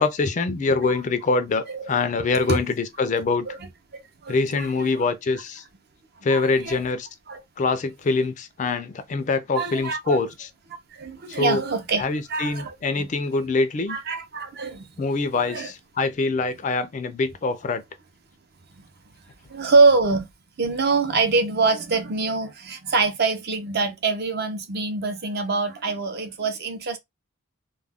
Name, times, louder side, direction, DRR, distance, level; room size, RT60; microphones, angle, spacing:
voice 1, 0.0-3.5 4.3-5.6 6.2-7.1 7.6-10.5 11.3-11.6 12.0-14.0 15.0-17.8, left 3 dB, 35° left, 0.3 m, -24 dB
voice 2, 3.5-4.9 6.3-6.8 7.3-7.4 9.5-10.2 10.9-12.0 12.3-13.1 13.9-14.9 15.5-15.7 19.5-20.3 20.6-27.0, right 4 dB, 50° right, 0.5 m, -24 dB
2.3 x 2.1 x 3.4 m
head